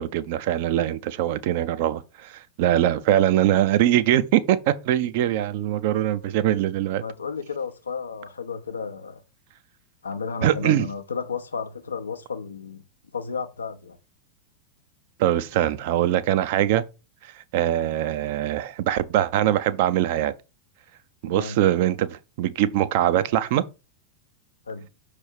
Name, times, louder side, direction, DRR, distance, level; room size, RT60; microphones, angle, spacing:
voice 1, 0.0-7.0 10.4-10.9 15.2-16.9 17.3-20.3 21.2-23.6, right 12 dB, 50° right, 0.5 m, -22 dB
voice 2, 7.0-9.2 10.0-12.8 13.1-14.0 21.3-21.6 24.7-24.9, left 5 dB, 75° left, 0.7 m, -33 dB
6.1 x 3.3 x 5.1 m
figure-of-eight pair, 90°, 0 cm